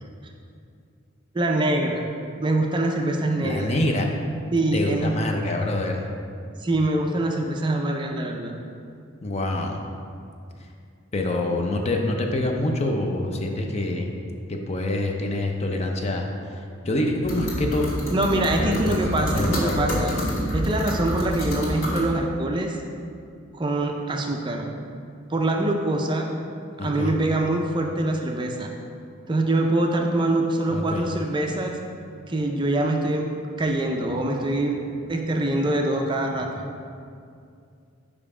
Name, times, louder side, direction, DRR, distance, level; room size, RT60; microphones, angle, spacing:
voice 1, 1.3-2.1 2.4-3.7 4.5-5.1 6.6-8.5 18.1-20.1 20.5-22.8 23.5-24.6 25.3-26.3 26.8-28.7 29.3-31.7 32.3-33.3 33.6-34.8 35.1-36.5, right 1 dB, 25° right, 2 dB, 0.4 m, -24 dB
voice 2, 3.4-4.1 4.7-6.0 9.2-9.8 11.1-14.1 14.5-17.9 18.6-19.9 26.8-27.1 30.7-31.0, left 1 dB, 30° left, 2 dB, 0.5 m, -26 dB
sound 1, 17.2-22.0, equal, 85° left, 1.5 m, -27 dB
5.4 x 5.1 x 4.8 m, 2.4 s
head